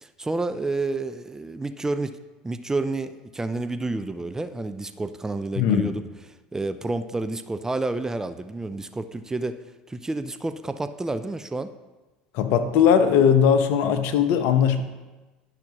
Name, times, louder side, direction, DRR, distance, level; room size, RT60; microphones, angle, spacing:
voice 1, 0.0-2.2 2.4-6.0 6.5-9.6 9.9-11.7, right 2 dB, 15° right, 10 dB, 0.4 m, -29 dB
voice 2, 5.6-6.0 12.3-14.8, left 8 dB, 60° left, 8 dB, 0.9 m, -19 dB
12.0 x 5.9 x 3.0 m, 1.2 s
hypercardioid pair, 80°, 4 cm